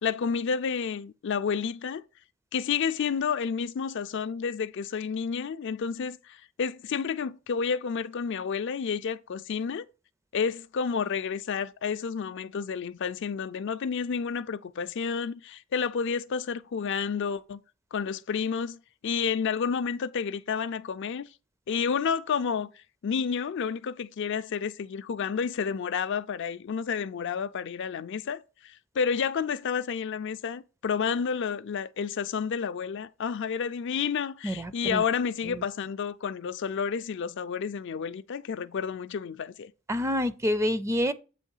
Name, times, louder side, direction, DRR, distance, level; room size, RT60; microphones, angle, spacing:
voice 1, 0.0-2.0 2.5-9.8 10.3-17.6 17.9-21.3 21.7-22.7 23.0-39.7, left 6 dB, 60° left, 0.4 m, -30 dB
voice 2, 34.4-35.0 35.4-35.6 39.9-41.1, equal, 15° right, 0.4 m, -28 dB
8.2 x 3.0 x 5.5 m
head